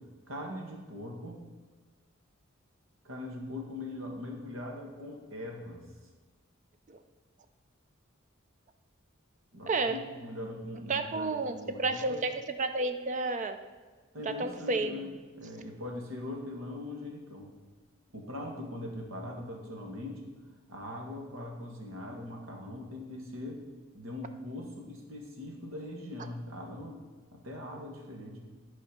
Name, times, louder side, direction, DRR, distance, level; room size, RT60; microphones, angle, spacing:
voice 1, 0.3-1.4 3.0-5.8 9.5-12.2 14.1-17.5 18.1-20.3 20.7-23.6 23.9-27.0 27.3-28.4, left 1 dB, 80° right, 1 dB, 1.8 m, -41 dB
voice 2, 9.7-10.0 10.9-12.3 12.6-13.6 14.2-15.0, right 3 dB, 35° right, 8 dB, 0.5 m, -31 dB
10.5 x 4.4 x 6.5 m, 1.4 s
head